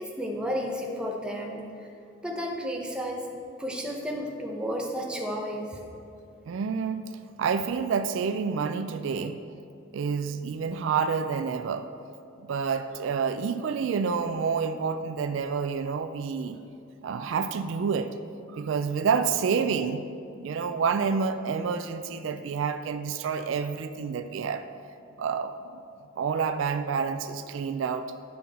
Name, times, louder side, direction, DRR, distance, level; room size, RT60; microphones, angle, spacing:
voice 1, 0.0-1.9 2.2-3.3 3.6-5.8, equal, 5° right, 0 dB, 0.7 m, -32 dB
voice 2, 6.5-7.0 7.4-9.4 9.9-11.9 12.5-16.6 17.0-18.2 18.5-20.1 20.4-24.7 25.2-25.5 26.2-28.1, right 6 dB, 65° right, 9 dB, 0.3 m, -28 dB
10.5 x 5.5 x 4.2 m, 2.6 s
head